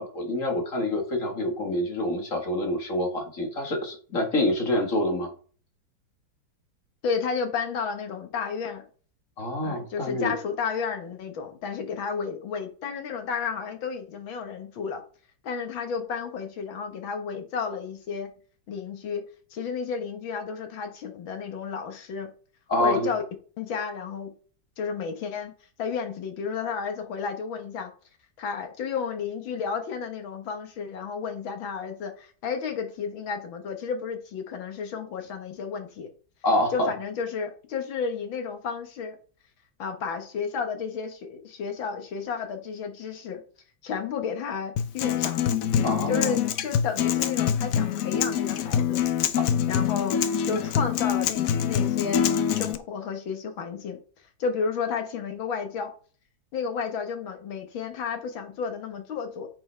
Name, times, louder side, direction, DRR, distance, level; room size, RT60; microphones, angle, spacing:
voice 1, 0.0-5.3 9.4-10.3 22.7-23.1 36.4-36.9 45.8-46.4, left 1 dB, 45° left, 2.0 m, -26 dB
voice 2, 7.0-8.8 9.6-15.0 15.4-18.3 18.7-19.2 19.5-22.3 22.8-23.2 23.6-24.3 24.8-25.5 25.8-27.9 28.4-36.1 36.7-39.2 39.8-43.4 43.8-45.4 46.1-49.0 49.7-54.0 54.4-55.9 56.5-59.5, left 6 dB, 90° left, 2.2 m, -32 dB
Acoustic guitar, 44.8-52.7, left 9 dB, 70° left, 0.8 m, -25 dB
8.8 x 5.6 x 3.4 m
omnidirectional pair, 2.1 m